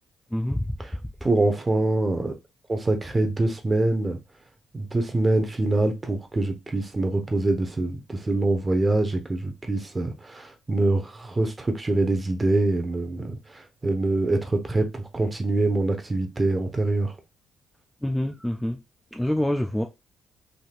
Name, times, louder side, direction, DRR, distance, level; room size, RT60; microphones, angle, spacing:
voice 1, 0.3-0.8 18.0-18.8 19.1-19.8, left 1 dB, 5° left, 0.4 m, -26 dB
voice 2, 1.2-2.3 2.7-4.2 4.7-17.1, right 2 dB, 25° right, 0.8 m, -24 dB
3.4 x 2.6 x 2.4 m
cardioid pair, 90°, 0 cm